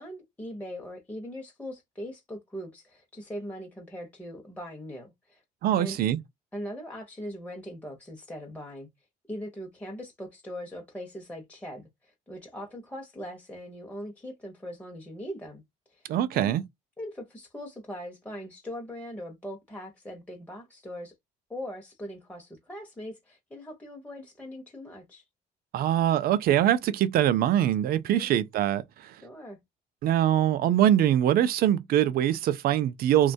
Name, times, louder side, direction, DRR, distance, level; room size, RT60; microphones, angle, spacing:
voice 1, 0.0-5.4 5.7-6.0 6.5-8.9 9.3-15.6 15.9-16.1 16.3-16.5 17.0-21.1 21.5-25.2 28.2-28.4 29.2-29.6, equal, 10° left, 0.7 m, -40 dB
voice 2, 5.6-6.2 16.1-16.6 25.7-29.2 30.0-33.3, right 11 dB, 65° right, 0.5 m, -23 dB
2.9 x 2.2 x 2.6 m
cardioid pair, 110°, 17 cm